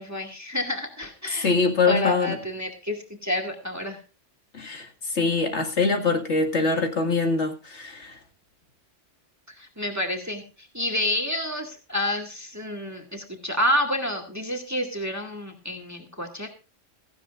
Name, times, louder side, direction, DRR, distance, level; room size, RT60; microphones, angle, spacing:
voice 1, 0.0-1.5 1.8-4.0 9.6-10.4 10.7-16.5, left 1 dB, 15° right, 3 dB, 2.1 m, -29 dB
voice 2, 1.3-2.4 4.5-8.2, left 4 dB, 70° left, 4 dB, 2.3 m, -24 dB
16.5 x 15.5 x 2.5 m, 0.32 s
omnidirectional pair, 1.2 m